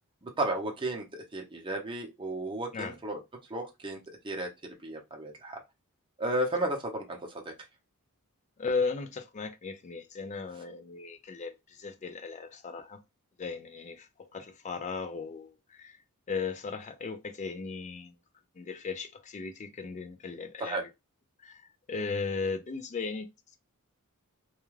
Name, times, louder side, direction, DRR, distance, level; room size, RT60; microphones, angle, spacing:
voice 1, 0.2-3.2 3.5-4.0 4.2-5.6 6.2-7.4 20.6-20.8, right 1 dB, 25° right, 0.7 m, -33 dB
voice 2, 8.6-13.0 13.4-16.0 16.3-18.1 18.6-20.9 21.4-23.6, left 4 dB, 30° left, 0.4 m, -36 dB
2.3 x 2.2 x 3.1 m
head